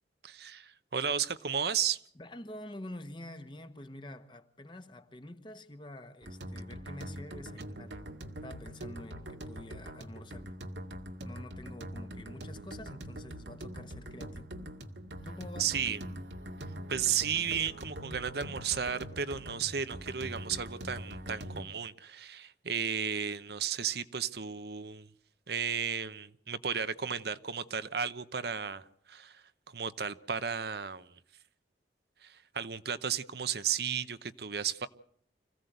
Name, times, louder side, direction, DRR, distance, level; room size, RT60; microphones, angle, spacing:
voice 1, 0.2-2.0 15.6-16.0 16.9-25.1 25.5-29.4 29.7-31.1 32.2-34.9, right 7 dB, 65° right, 0.9 m, -34 dB
voice 2, 2.1-8.0 8.4-10.5 11.2-14.5 15.2-15.8, left 1 dB, 25° left, 1.3 m, -47 dB
sound 1, 6.2-21.6, equal, 90° right, 2.0 m, -43 dB
26.0 x 16.0 x 8.1 m
head